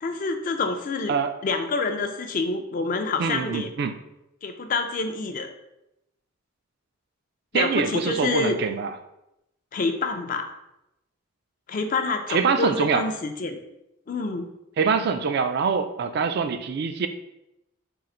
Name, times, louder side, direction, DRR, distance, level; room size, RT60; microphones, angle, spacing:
voice 1, 0.0-1.1 1.4-3.7 4.4-5.5 7.5-8.6 9.7-10.5 11.7-13.6 14.1-14.5, left 3 dB, 40° left, 6 dB, 0.4 m, -27 dB
voice 2, 3.2-4.0 7.5-8.9 12.3-13.0 14.8-17.1, right 5 dB, 50° right, 9 dB, 0.3 m, -24 dB
3.8 x 2.4 x 4.2 m, 0.87 s
head